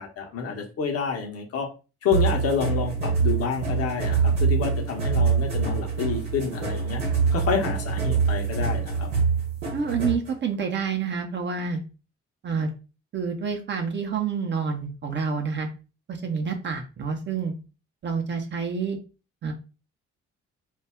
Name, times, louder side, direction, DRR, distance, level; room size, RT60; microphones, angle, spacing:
voice 1, 0.0-1.7 2.0-7.0 7.3-9.1, left 6 dB, 40° left, 3 dB, 0.7 m, -28 dB
sound 1, 2.1-10.3, right 5 dB, 80° right, 0.8 m, -25 dB
voice 2, 9.7-11.8 12.4-12.7 13.1-15.7 16.1-17.5 18.0-19.0 19.4-19.5, right 5 dB, 30° right, 3 dB, 0.6 m, -28 dB
2.3 x 2.0 x 3.5 m, 0.33 s
figure-of-eight pair, 40°, 35 cm